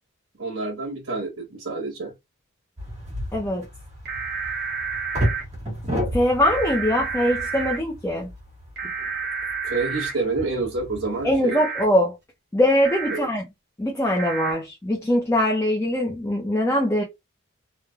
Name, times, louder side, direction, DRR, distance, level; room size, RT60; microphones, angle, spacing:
voice 1, 0.4-2.1 9.6-11.6 13.1-13.3, right 3 dB, 75° right, 1.0 m, -28 dB
sound 1, 2.8-11.4, equal, 30° right, 1.4 m, -32 dB
voice 2, 3.3-3.7 6.1-8.3 11.2-12.2 12.5-13.5 13.8-17.0, equal, 10° left, 0.4 m, -22 dB
sound 2, 4.1-5.4 6.4-7.8 8.8-10.1 11.5-11.8 12.8-13.2 14.2-14.5, right 5 dB, 50° right, 1.0 m, -30 dB
3.0 x 2.2 x 2.2 m
head